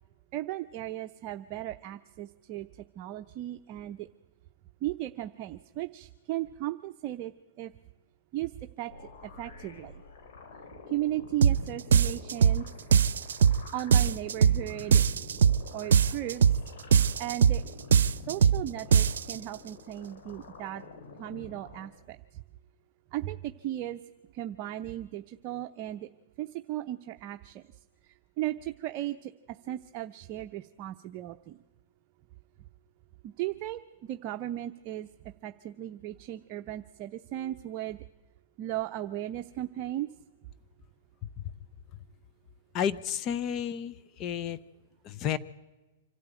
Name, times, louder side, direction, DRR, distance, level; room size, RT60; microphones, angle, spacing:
voice 1, 0.3-2.7 3.0-4.1 4.8-7.7 8.3-8.5 8.8-8.9 9.2-9.9 10.9-12.6 13.7-15.0 15.7-16.4 17.2-17.6 18.2-20.8 21.2-22.2 23.1-24.0 24.3-26.1 26.4-27.6 28.0-31.6 33.2-35.1 35.4-38.0 38.6-40.1, right 14 dB, 45° right, 7 dB, 0.7 m, -36 dB
sound 1, 8.9-21.9, left 4 dB, 65° left, 3.7 m, -48 dB
sound 2, 11.4-11.6 11.9-12.6 12.9-13.6 13.9-14.6 14.9-15.6 15.9-16.6 16.9-17.6 17.9-18.6 18.9-19.4, right 7 dB, 80° right, 0.6 m, -21 dB
voice 2, 42.7-44.6 45.0-45.4, left 9 dB, 35° left, 16 dB, 0.8 m, -31 dB
26.0 x 13.0 x 9.1 m, 1.2 s
hypercardioid pair, 120°, 0 cm